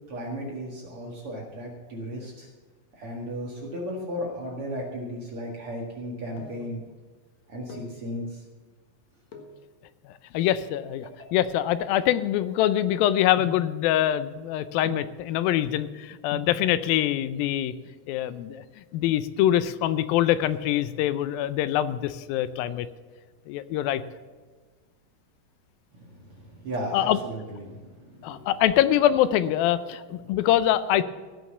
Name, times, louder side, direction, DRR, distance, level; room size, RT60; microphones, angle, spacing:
voice 1, 0.1-2.5 2.9-6.8 7.5-8.4 11.0-11.3 25.9-28.5, equal, 45° right, -2 dB, 2.3 m, -35 dB
sound 1, 6.4-6.8 7.5-8.0 9.3-9.6 10.4-12.8 13.4-13.8 14.9-15.3 16.0-16.1 16.3-16.7 17.8-18.3 18.6-18.7 18.9-19.1 19.5-19.9 20.2-21.2 21.6-22.1 22.4-23.6 23.9-24.0, left 4 dB, 60° left, 2.4 m, -43 dB
voice 2, 10.3-17.7 18.1-18.6 18.9-22.9 23.5-24.0 26.9-27.2 28.2-31.0, left 12 dB, 85° left, 14 dB, 2.4 m, -24 dB
16.0 x 6.2 x 7.1 m, 1.4 s
omnidirectional pair, 4.1 m